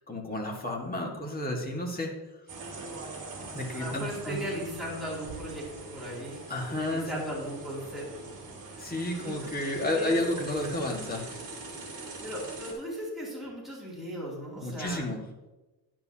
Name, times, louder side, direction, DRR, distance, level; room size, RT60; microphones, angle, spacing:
voice 1, 0.1-2.1 3.5-4.4 6.5-7.1 8.8-11.3 14.6-15.2, left 1 dB, 20° left, -1 dB, 1.8 m, -31 dB
sound 1, 2.5-12.7, right 3 dB, 50° right, 2.6 m, -42 dB
voice 2, 3.7-6.4 6.7-8.3 8.6-8.8 9.1-10.2 12.0-15.1, equal, ahead, -7 dB, 3.0 m, -38 dB
10.5 x 10.0 x 2.9 m, 1.1 s
cardioid pair, 140°, 42 cm